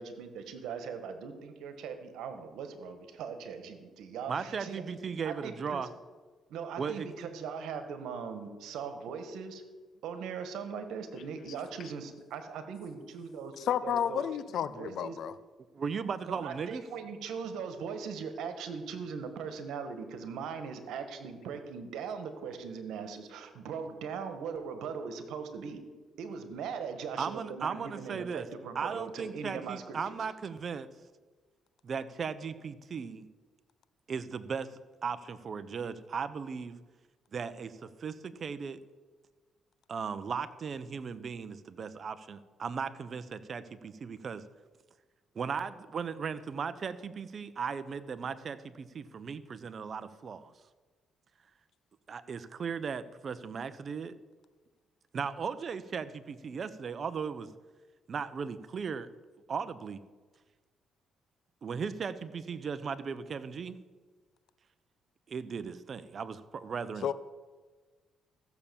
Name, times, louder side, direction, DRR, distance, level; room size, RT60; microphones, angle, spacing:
voice 1, 0.0-4.8 5.2-5.9 6.5-9.6 10.0-13.6 13.8-14.3 14.7-15.2 16.3-25.8 26.2-30.2, right 6 dB, 85° right, 1.5 m, -40 dB
voice 2, 4.3-5.9 6.8-7.1 15.7-16.8 27.2-28.5 28.7-30.9 31.8-33.2 34.1-36.8 37.3-38.8 39.9-44.4 45.3-50.5 52.1-54.1 55.1-57.5 58.1-59.1 59.5-60.0 61.6-63.8 65.3-67.1, right 6 dB, 50° right, 0.8 m, -37 dB
voice 3, 13.7-15.3 67.0-67.1, left 9 dB, 70° left, 0.7 m, -31 dB
14.5 x 7.1 x 7.1 m
cardioid pair, 90°, 0 cm